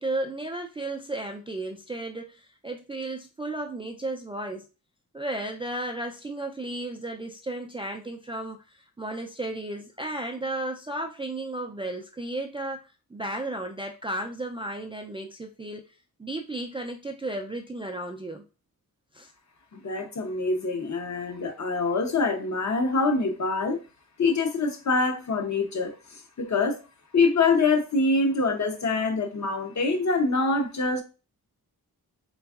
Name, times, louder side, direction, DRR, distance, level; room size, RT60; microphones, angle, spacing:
voice 1, 0.0-4.6 5.1-12.8 13.1-15.9 16.2-18.4 19.1-19.3, right 1 dB, 15° right, 0.3 m, -34 dB
voice 2, 19.7-23.8 24.2-26.8 27.1-31.0, left 3 dB, 50° left, 0.8 m, -25 dB
3.9 x 3.4 x 2.4 m
wide cardioid pair, 105°, 38 cm